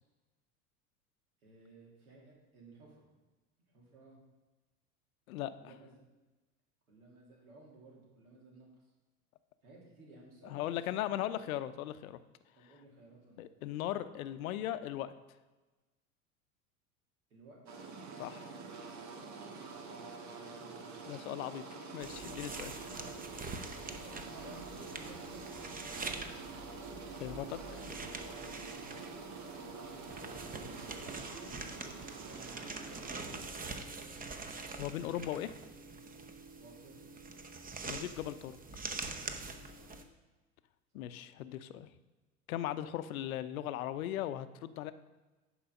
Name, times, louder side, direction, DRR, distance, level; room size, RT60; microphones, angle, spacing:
voice 1, 1.4-3.1 3.7-4.2 5.6-6.1 6.9-8.9 9.6-11.3 12.5-13.4 17.3-17.6 19.3-21.3 24.0-26.5 27.4-27.9 28.2-29.3 29.7-31.6 32.2-34.4 36.6-37.1 39.7-40.0 40.9-41.1 41.4-41.6, right 2 dB, 80° right, -3 dB, 2.8 m, -56 dB
voice 2, 10.4-12.2 13.4-15.1 18.2-18.4 21.1-22.7 27.1-27.6 34.8-35.5 37.9-38.6 40.9-41.9 42.5-44.9, left 12 dB, 70° left, 13 dB, 0.7 m, -38 dB
sound 1, 17.7-33.4, right 4 dB, 40° right, 1.6 m, -47 dB
sound 2, 22.0-40.0, right 3 dB, 20° right, 0.9 m, -45 dB
10.0 x 4.7 x 5.3 m, 1.2 s
hypercardioid pair, 80°, 43 cm